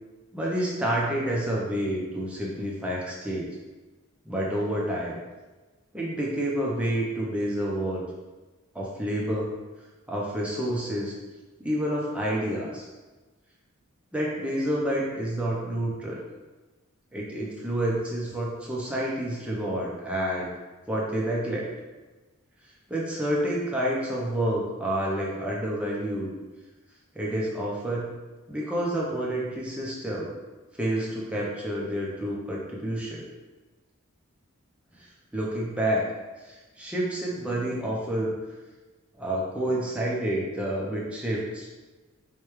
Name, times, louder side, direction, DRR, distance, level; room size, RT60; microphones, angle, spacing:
voice 1, 0.3-3.5 4.2-5.2 5.9-8.0 8.7-9.6 10.1-11.2 11.6-12.9 14.1-16.2 17.1-20.5 20.9-21.7 22.9-26.3 27.1-28.1 28.5-30.3 30.8-33.2 34.9-36.0 36.4-38.3 39.2-41.7, right 1 dB, 5° right, -5 dB, 0.5 m, -29 dB
4.7 x 2.2 x 3.0 m, 1.2 s
head